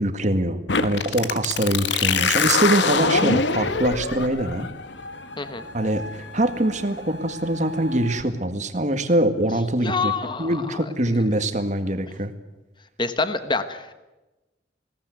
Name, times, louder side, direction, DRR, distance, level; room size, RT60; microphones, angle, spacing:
voice 1, 0.0-4.7 5.7-10.1 10.4-12.3, right 1 dB, 40° right, 8 dB, 2.0 m, -23 dB
sound 1, 0.7-8.2, left 4 dB, 85° left, 1.5 m, -25 dB
voice 2, 9.8-10.6 13.0-13.9, left 4 dB, 25° left, 11 dB, 1.2 m, -26 dB
20.5 x 18.0 x 9.4 m, 1.1 s
head